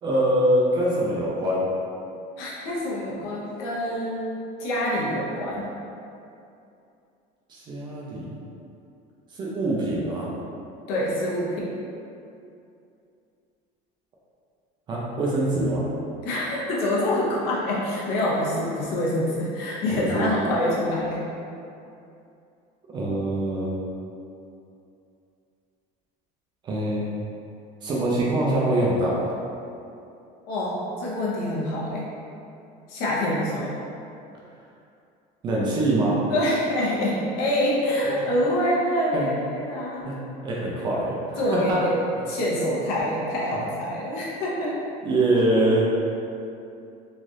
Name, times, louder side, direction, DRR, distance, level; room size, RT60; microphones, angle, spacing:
voice 1, 0.0-1.6 7.5-8.4 9.3-10.3 14.9-15.8 19.9-20.3 22.9-23.7 26.6-27.1 27.8-29.3 35.4-36.2 38.1-38.2 39.1-39.3 40.0-40.2 40.4-41.8 45.0-45.9, right 1 dB, 25° right, -5 dB, 0.4 m, -24 dB
voice 2, 2.4-5.7 10.9-11.7 16.2-21.2 30.5-32.1 32.9-33.7 36.3-40.0 41.4-44.7, left 1 dB, 60° left, -6 dB, 0.7 m, -26 dB
3.2 x 2.4 x 2.6 m, 2.6 s
cardioid pair, 175°, 17 cm